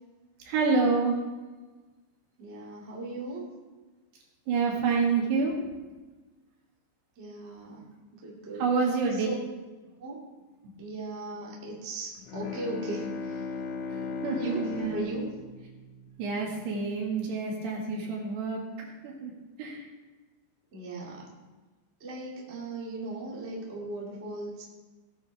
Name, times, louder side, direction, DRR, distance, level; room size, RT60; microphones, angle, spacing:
voice 1, 0.5-1.2 4.5-5.6 8.5-9.3 13.9-15.1 16.2-18.6 19.0-19.3 19.6-19.9, right 4 dB, 65° right, -1 dB, 3.8 m, -28 dB
voice 2, 2.4-3.4 7.1-8.7 9.2-9.3 10.0-10.2 10.8-13.4 13.9-14.6 14.9-15.3 20.7-21.3 22.0-24.6, right 2 dB, 30° right, -4 dB, 1.1 m, -38 dB
Bowed string instrument, 12.2-16.7, left 4 dB, 80° left, 3.4 m, -37 dB
17.5 x 9.3 x 3.5 m, 1.2 s
omnidirectional pair, 5.7 m